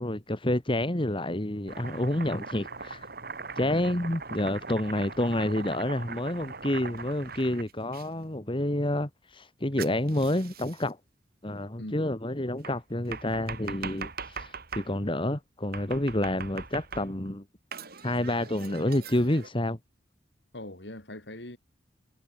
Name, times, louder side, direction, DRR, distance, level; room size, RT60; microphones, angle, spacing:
voice 1, 0.0-3.1 3.6-11.0 11.4-17.4 18.0-19.8, left 1 dB, 30° left, 2.0 m, -29 dB
Domestic sounds home sounds, 1.7-8.1 9.8-10.9 12.6-14.9 15.7-17.3 17.7-19.5, right 5 dB, 55° right, 4.4 m, -41 dB
voice 2, 3.6-4.1 6.9-7.0 11.8-11.9 20.5-21.6, left 1 dB, 65° left, 3.7 m, -42 dB
head